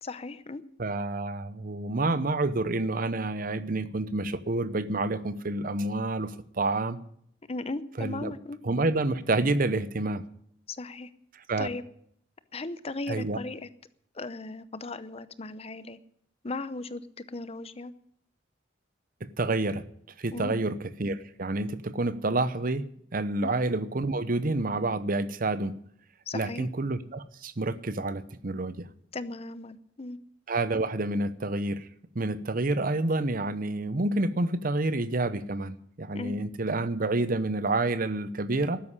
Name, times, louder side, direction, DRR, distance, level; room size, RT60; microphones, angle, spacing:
voice 1, 0.0-0.6 7.5-8.6 10.7-11.1 11.6-11.8 12.5-13.7 14.1-16.0 16.4-17.9 20.3-20.5 23.4-23.5 26.3-26.7 29.1-30.2 36.1-36.3, left 3 dB, 35° left, 0.7 m, -37 dB
voice 2, 0.8-7.0 8.0-8.3 8.6-10.2 11.5-11.7 13.1-13.4 19.2-19.8 20.2-25.7 26.3-28.9 30.5-31.9 32.1-38.8, right 2 dB, 50° right, 0.8 m, -28 dB
13.0 x 9.8 x 9.9 m
head